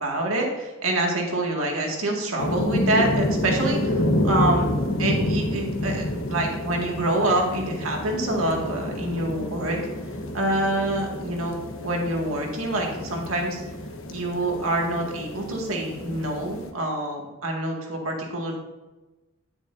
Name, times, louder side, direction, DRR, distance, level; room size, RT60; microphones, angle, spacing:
voice 1, 0.0-4.7 5.0-9.8 10.3-13.6 14.1-18.6, right 1 dB, 85° right, 0 dB, 2.0 m, -26 dB
sound 1, 2.4-16.7, left 1 dB, 75° left, 1.0 m, -29 dB
10.0 x 9.7 x 2.6 m, 1.1 s
head